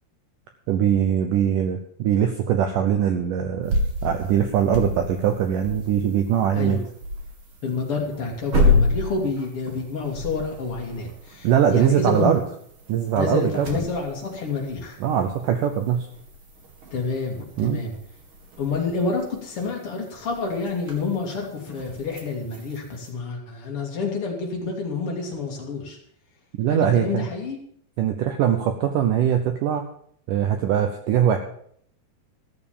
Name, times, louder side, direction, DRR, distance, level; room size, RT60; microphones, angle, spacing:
voice 1, 0.7-3.7 4.0-6.8 11.4-12.4 12.9-13.7 15.0-16.1 17.6-17.8 26.6-27.3 28.0-29.8 30.3-31.4, right 9 dB, 80° right, 6 dB, 1.9 m, -21 dB
sound 1, 3.6-23.1, left 2 dB, 40° right, 2.0 m, -30 dB
voice 2, 7.6-12.3 13.2-15.0 16.9-17.9 18.6-26.0 26.7-27.6, left 4 dB, 40° left, 0 dB, 2.7 m, -28 dB
14.5 x 6.9 x 7.0 m, 0.64 s
omnidirectional pair, 4.9 m